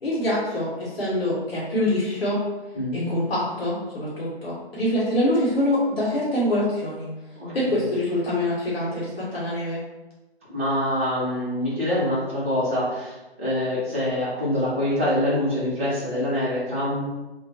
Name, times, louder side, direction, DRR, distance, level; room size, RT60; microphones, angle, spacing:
voice 1, 0.0-2.4 2.9-7.1 7.5-9.8, left 1 dB, 65° left, -7 dB, 1.0 m, -25 dB
voice 2, 2.7-3.1 7.4-7.9 10.5-17.0, left 1 dB, 15° right, -9 dB, 0.4 m, -25 dB
2.2 x 2.1 x 2.7 m, 1.1 s
figure-of-eight pair, 135°, 33 cm